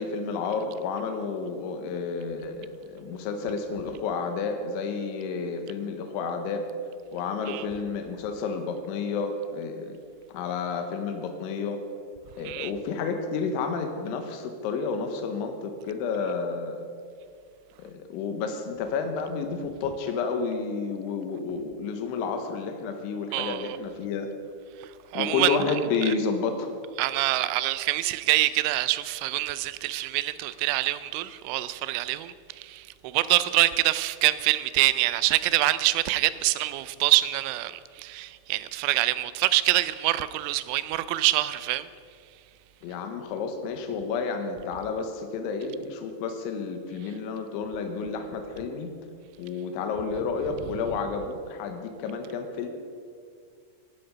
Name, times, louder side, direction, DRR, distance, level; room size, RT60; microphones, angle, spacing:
voice 1, 0.0-6.7 7.1-10.0 10.3-11.8 12.4-16.8 17.8-24.3 25.2-26.7 42.8-48.9 49.4-52.7, left 5 dB, 80° left, 3.6 m, -30 dB
voice 2, 23.3-23.8 25.1-25.6 26.1-26.2 27.0-41.9, right 17 dB, 85° right, 3.0 m, -25 dB
15.5 x 12.0 x 5.2 m
omnidirectional pair, 5.4 m